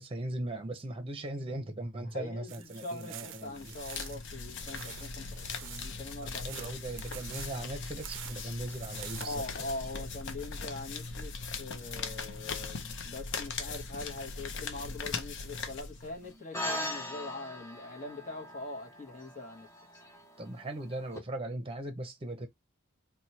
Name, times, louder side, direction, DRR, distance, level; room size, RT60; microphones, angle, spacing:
voice 1, 0.0-3.7 6.2-9.4 20.4-22.5, right 1 dB, 25° right, 0.8 m, -39 dB
voice 2, 2.1-6.7 9.1-19.7 19.9-20.0, left 2 dB, 35° left, 1.0 m, -42 dB
sound 1, 2.5-9.6, right 11 dB, 60° right, 0.4 m, -48 dB
sound 2, 3.5-16.3, left 4 dB, 60° left, 0.6 m, -40 dB
sound 3, 16.5-21.2, left 1 dB, 15° left, 0.7 m, -40 dB
3.0 x 2.3 x 4.1 m
head